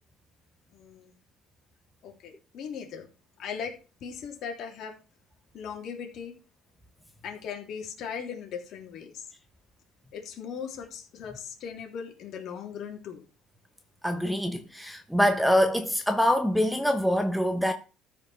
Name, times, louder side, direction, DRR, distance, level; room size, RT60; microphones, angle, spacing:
voice 1, 0.7-1.1 2.0-3.1 3.4-3.7 4.0-4.9 5.5-6.3 7.2-9.2 10.1-13.2, left 7 dB, 55° left, 3.3 m, -38 dB
voice 2, 14.0-17.7, equal, ahead, 1.0 m, -24 dB
13.5 x 5.2 x 5.7 m
cardioid pair, 135°, 0 cm